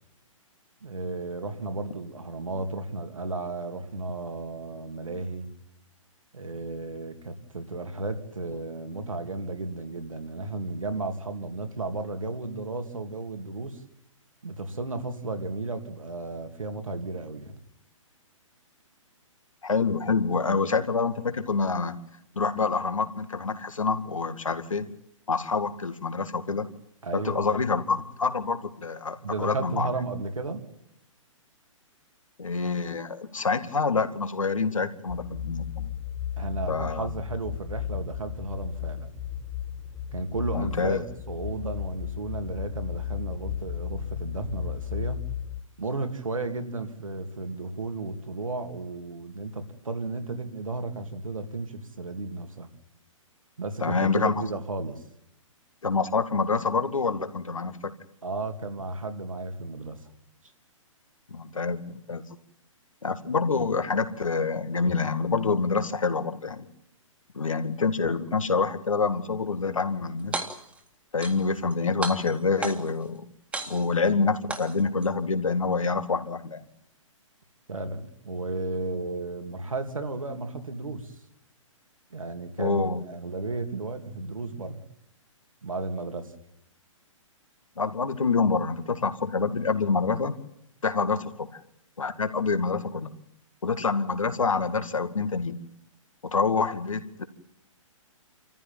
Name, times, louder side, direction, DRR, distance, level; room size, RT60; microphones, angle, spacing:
voice 1, 0.8-5.5 6.3-13.8 14.4-17.5 27.0-27.8 29.2-30.6 36.4-39.1 40.1-45.2 45.8-52.7 53.6-55.0 58.2-60.1 77.7-81.1 82.1-84.8 85.6-86.3, right 3 dB, 75° right, 6 dB, 3.0 m, -33 dB
voice 2, 19.6-22.0 22.4-24.9 25.3-26.7 27.1-29.9 32.4-35.9 36.7-37.1 40.5-41.0 53.8-54.5 55.8-57.9 61.3-62.2 63.0-66.7 67.3-70.4 71.1-73.3 73.7-76.6 82.6-83.0 87.8-90.3 90.8-91.6 92.0-93.1 93.6-95.6 96.2-97.2, left 4 dB, 75° left, 10 dB, 2.1 m, -27 dB
sound 1, 35.1-45.6, left 10 dB, 15° left, 2.3 m, -35 dB
sound 2, 70.2-70.8 71.2-71.7 72.0-73.0 73.5-74.1 74.5-75.1, right 3 dB, 5° right, 2.0 m, -34 dB
28.5 x 14.5 x 9.1 m, 0.75 s
figure-of-eight pair, 125°, 17 cm